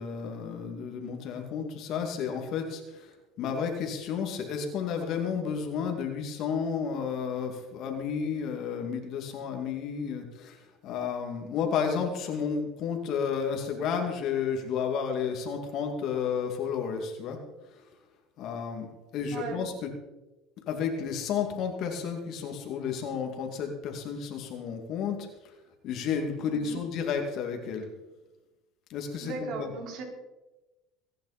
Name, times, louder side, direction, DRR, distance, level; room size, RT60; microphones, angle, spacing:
voice 1, 0.0-17.4 17.7-17.8 18.4-19.7 20.7-25.5 25.8-27.9 28.9-29.7, left 6 dB, 55° left, 3 dB, 2.4 m, -32 dB
voice 2, 19.3-19.6 26.5-26.8 29.2-30.0, right 3 dB, 60° right, 0 dB, 4.8 m, -37 dB
21.5 x 10.0 x 4.3 m, 1.1 s
supercardioid pair, 120°, 0 cm